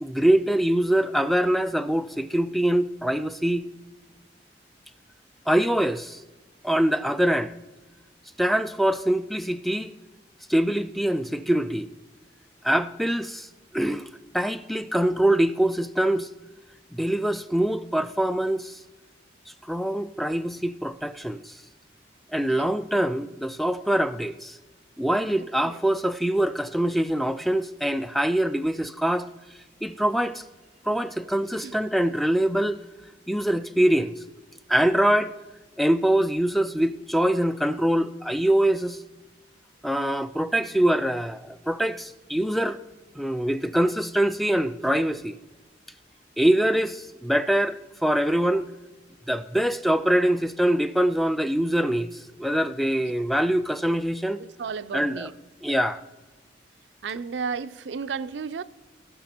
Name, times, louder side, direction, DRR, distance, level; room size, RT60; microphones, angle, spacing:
voice 1, 0.0-3.7 5.5-6.2 6.6-7.5 8.4-10.0 10.5-11.9 12.6-13.5 13.7-14.1 14.3-16.3 16.9-18.8 19.6-21.6 22.3-24.6 25.0-29.3 29.8-30.4 30.8-32.8 33.3-34.1 34.7-35.3 35.8-39.0 39.8-42.8 43.2-45.4 46.4-48.7 49.3-54.4 54.9-55.3 55.6-56.0, right 1 dB, ahead, 0.3 m, -24 dB
voice 2, 54.4-55.3 55.7-55.8 57.0-58.6, right 5 dB, 75° right, 0.4 m, -33 dB
17.5 x 6.0 x 4.4 m
head